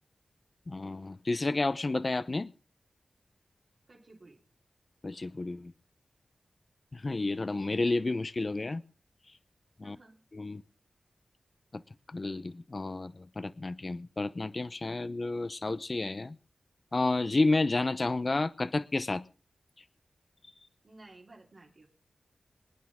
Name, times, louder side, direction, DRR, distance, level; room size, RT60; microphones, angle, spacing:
voice 1, 0.7-2.5 5.0-5.7 6.9-8.8 9.8-10.0 10.3-10.6 12.1-16.4 16.9-19.2, left 2 dB, 45° left, 0.7 m, -31 dB
voice 2, 3.9-4.4 9.8-10.1 20.8-21.9, right 2 dB, 60° right, 3.3 m, -54 dB
27.0 x 9.4 x 3.6 m
cardioid pair, 55°, 0 cm